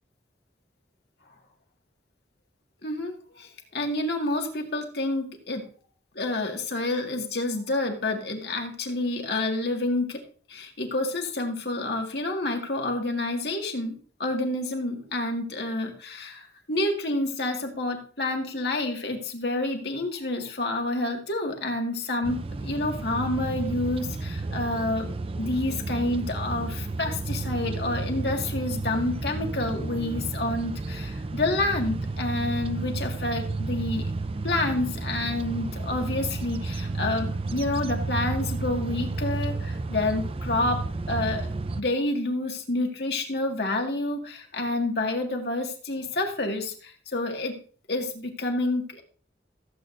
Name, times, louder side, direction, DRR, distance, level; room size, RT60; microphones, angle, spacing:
voice 1, 2.8-5.6 6.2-10.2 10.5-25.1 25.4-34.1 34.4-40.8 41.1-41.5 41.8-47.6 47.9-49.0, left 2 dB, 60° left, 2 dB, 2.0 m, -29 dB
sound 1, 22.2-41.8, right 3 dB, 30° right, 0.5 m, -32 dB
15.5 x 8.2 x 2.6 m, 0.42 s
head